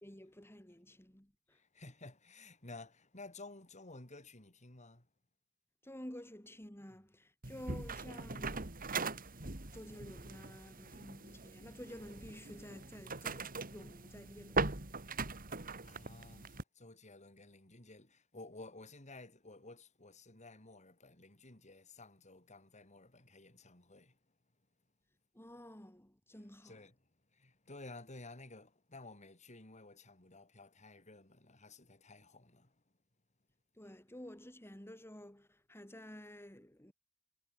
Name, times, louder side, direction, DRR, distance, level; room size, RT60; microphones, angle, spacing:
voice 1, 0.0-1.6 5.8-9.5 9.7-14.9 25.3-26.8 33.7-36.9, left 1 dB, 10° left, 3.9 m, -52 dB
voice 2, 1.5-5.1 6.9-7.0 7.5-7.6 15.8-24.2 26.6-32.8, left 2 dB, 35° left, 4.2 m, -54 dB
sound 1, 7.4-16.6, right 4 dB, 45° right, 2.9 m, -41 dB
head